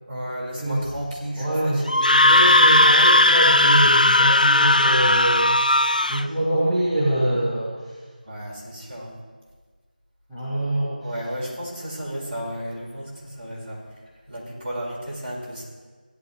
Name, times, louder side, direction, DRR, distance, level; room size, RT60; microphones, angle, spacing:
voice 1, 0.1-2.5 8.2-9.2 10.4-10.5 11.0-15.6, equal, 20° right, -11 dB, 4.2 m, -33 dB
voice 2, 1.4-1.8 2.2-5.6 6.1-7.9 10.3-10.9, right 1 dB, ahead, -18 dB, 0.9 m, -24 dB
Screaming, 1.9-6.2, left 1 dB, 60° left, 0.4 m, -16 dB
17.0 x 11.5 x 3.5 m, 1.5 s
figure-of-eight pair, 170°, 5 cm